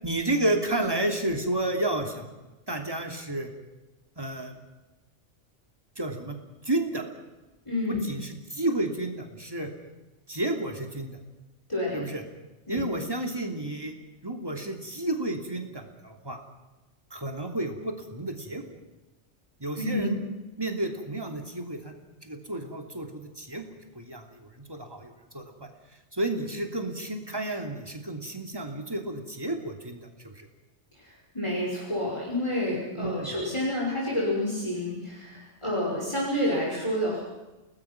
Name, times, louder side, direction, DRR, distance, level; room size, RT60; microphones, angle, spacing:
voice 1, 0.0-2.3 2.7-3.5 4.2-4.5 6.0-6.4 6.6-7.0 7.9-9.7 10.3-11.2 11.9-12.2 12.7-13.9 14.2-16.4 17.1-18.6 19.6-20.2 20.6-22.0 22.2-23.7 23.9-25.7 26.1-30.5 32.9-33.3, right 1 dB, 20° right, 3 dB, 3.0 m, -31 dB
voice 2, 7.7-8.0 11.7-12.0 12.7-12.8 19.7-20.1 30.9-37.2, left 1 dB, 25° left, -5 dB, 5.6 m, -29 dB
29.5 x 19.5 x 6.1 m, 1.1 s
omnidirectional pair, 1.2 m